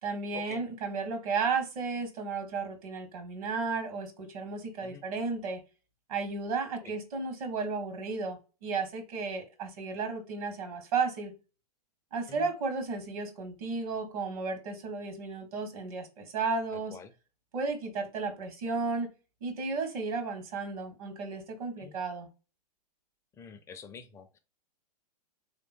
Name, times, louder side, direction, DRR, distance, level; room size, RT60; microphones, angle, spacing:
voice 1, 0.0-5.6 6.1-11.3 12.1-17.0 17.5-19.1 19.4-22.3, right 4 dB, 60° right, 1.2 m, -33 dB
voice 2, 23.4-24.4, left 6 dB, 15° left, 0.4 m, -47 dB
3.3 x 2.8 x 2.5 m
hypercardioid pair, 115°, 21 cm